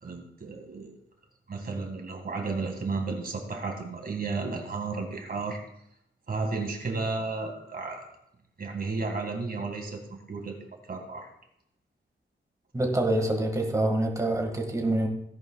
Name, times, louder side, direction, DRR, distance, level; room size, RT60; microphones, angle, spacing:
voice 1, 0.0-0.9 1.5-5.6 6.3-8.1 8.6-10.6 10.9-11.3, right 3 dB, 50° right, 3 dB, 2.0 m, -33 dB
voice 2, 12.7-15.1, right 1 dB, 15° right, 1 dB, 1.9 m, -26 dB
17.0 x 10.5 x 2.4 m, 0.75 s
wide cardioid pair, 165°, 20 cm